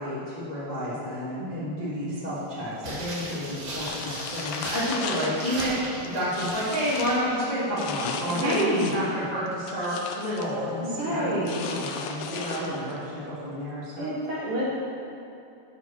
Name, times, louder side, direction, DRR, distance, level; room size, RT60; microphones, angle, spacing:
voice 1, 0.0-5.8 6.1-14.1, equal, 55° left, -10 dB, 0.4 m, -30 dB
voice 2, 1.4-2.3 8.3-9.0 10.8-11.7 12.3-12.9 14.0-14.7, right 1 dB, 80° right, -6 dB, 1.2 m, -30 dB
sound 1, 2.8-7.2 7.5-7.6, right 1 dB, 40° right, 2.5 m, -37 dB
sound 2, 3.8-5.7 6.0-7.2 7.8-9.1 9.5-10.5 11.4-13.0, left 6 dB, 80° left, 1.8 m, -36 dB
7.9 x 4.9 x 7.1 m, 2.7 s
omnidirectional pair, 4.3 m